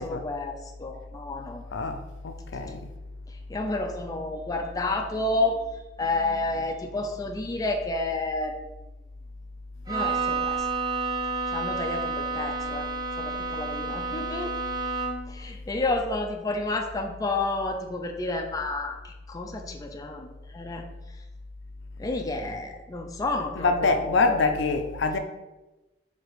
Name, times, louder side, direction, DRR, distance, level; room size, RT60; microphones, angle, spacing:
voice 1, 0.0-1.6 3.3-8.6 9.9-10.7 11.5-12.9 13.2-14.5 15.3-21.2 22.0-24.4, left 2 dB, 20° left, 0.3 m, -30 dB
voice 2, 1.7-2.9 23.6-25.2, left 3 dB, 85° left, 0.4 m, -25 dB
Bowed string instrument, 9.9-15.4, right 4 dB, 20° right, 0.7 m, -30 dB
3.1 x 2.9 x 4.6 m
head